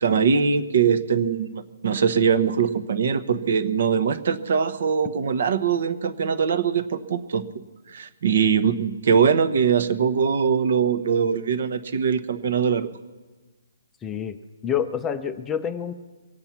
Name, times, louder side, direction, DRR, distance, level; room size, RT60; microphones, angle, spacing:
voice 1, 0.0-7.4 7.9-12.9, right 6 dB, 50° right, 10 dB, 1.0 m, -22 dB
voice 2, 14.0-14.4 14.6-15.9, left 8 dB, 10° left, 9 dB, 0.5 m, -27 dB
23.5 x 8.8 x 5.9 m, 1.3 s
hypercardioid pair, 165°, 0 cm